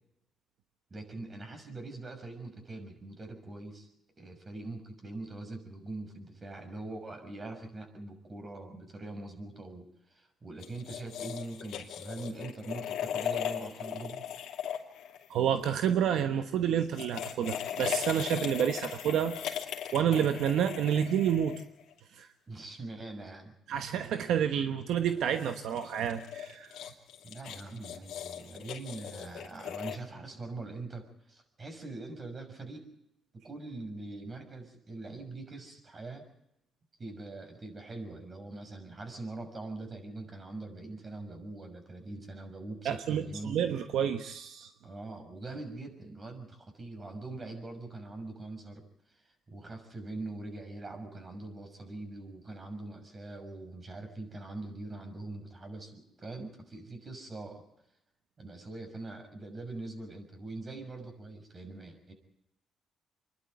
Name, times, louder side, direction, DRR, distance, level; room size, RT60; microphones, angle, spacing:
voice 1, 0.9-3.9 4.2-14.2 22.5-23.5 27.2-32.8 33.3-36.2 37.0-43.6 44.8-48.8 49.1-57.6 58.4-62.1, right 2 dB, 35° right, 5 dB, 6.2 m, -43 dB
sound 1, 10.6-15.7 16.8-22.0 25.2-30.0, left 9 dB, 80° left, 2.8 m, -38 dB
voice 2, 15.3-19.6 19.9-21.6 22.1-22.3 23.7-26.7 42.8-44.7, right 9 dB, 80° right, 7 dB, 1.1 m, -29 dB
27.5 x 11.5 x 9.3 m, 0.84 s
cardioid pair, 90°, 0 cm